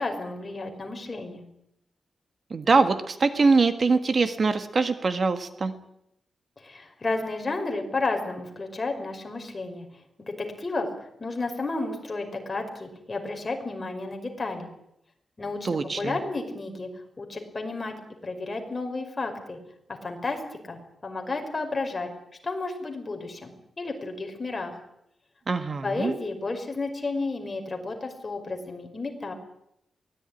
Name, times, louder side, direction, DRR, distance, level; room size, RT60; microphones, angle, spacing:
voice 1, 0.0-1.4 6.6-9.9 10.4-10.9 11.2-14.7 15.4-15.7 16.0-16.9 17.2-18.0 18.2-19.6 20.0-22.1 22.4-24.8 25.8-29.3, left 3 dB, 25° left, 4 dB, 5.3 m, -32 dB
voice 2, 2.5-5.7 15.6-16.2 25.5-26.1, right 4 dB, 45° right, 9 dB, 1.7 m, -23 dB
23.5 x 18.5 x 9.9 m, 0.79 s
wide cardioid pair, 135°, 0 cm